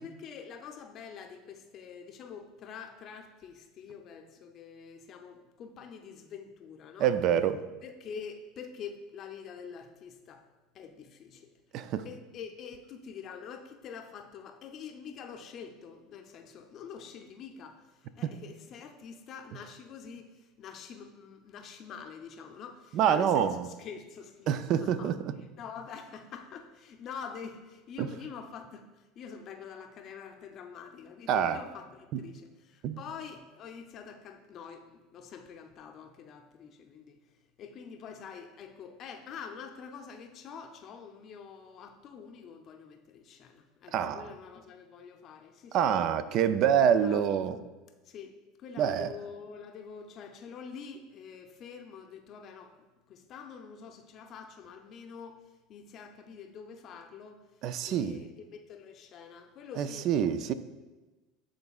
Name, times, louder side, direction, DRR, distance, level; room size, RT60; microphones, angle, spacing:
voice 1, 0.0-7.2 7.8-10.5 10.7-11.6 12.0-46.1 47.0-47.2 48.0-52.8 53.1-60.1, left 6 dB, 45° left, 0.5 m, -46 dB
voice 2, 7.0-7.6 11.7-12.1 22.9-23.7 24.5-25.1 28.0-28.1 31.3-31.6 32.8-33.0 43.9-44.3 45.7-47.6 48.8-49.1 57.6-58.2 59.8-60.5, right 8 dB, 55° right, 0.4 m, -26 dB
10.5 x 3.8 x 2.4 m
hypercardioid pair, 95°, 0 cm